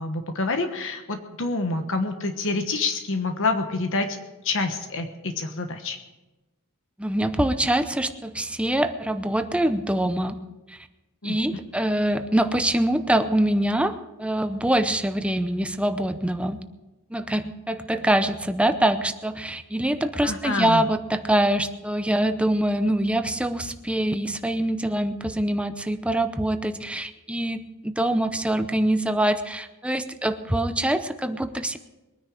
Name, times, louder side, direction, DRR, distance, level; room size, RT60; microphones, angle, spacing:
voice 1, 0.0-4.2 4.4-6.0 11.2-11.4 20.2-20.8, left 3 dB, 60° left, 6 dB, 1.2 m, -27 dB
voice 2, 7.0-10.4 10.7-10.8 11.2-16.6 17.1-31.8, right 1 dB, 5° right, 9 dB, 0.7 m, -24 dB
22.0 x 9.9 x 5.0 m, 1.1 s
head